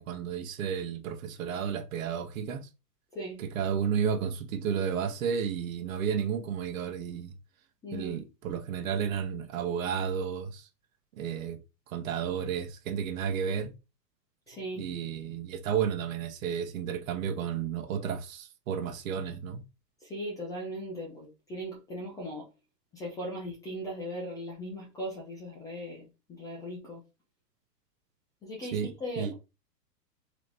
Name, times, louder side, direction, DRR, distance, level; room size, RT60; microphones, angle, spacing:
voice 1, 0.0-2.7 3.4-7.3 7.9-10.7 11.1-11.6 11.9-13.7 14.7-19.6 28.7-28.9 29.2-29.3, right 7 dB, 55° right, 1.0 m, -32 dB
voice 2, 7.8-8.2 14.5-14.9 20.0-22.5 22.9-27.0 28.4-29.3, equal, 10° left, 0.4 m, -38 dB
3.9 x 3.0 x 3.4 m
hypercardioid pair, 130°, 49 cm